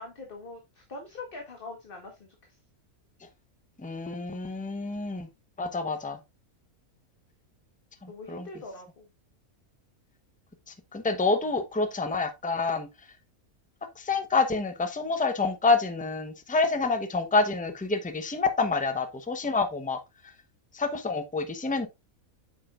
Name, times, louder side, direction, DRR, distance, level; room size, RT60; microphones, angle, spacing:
voice 1, 0.0-2.6 8.1-9.1, left 3 dB, 40° left, 1.6 m, -43 dB
voice 2, 3.8-5.3 5.6-6.2 8.0-8.5 10.9-12.9 14.0-20.0 20.7-21.9, left 3 dB, 5° left, 0.7 m, -27 dB
8.6 x 6.2 x 2.4 m
omnidirectional pair, 1.5 m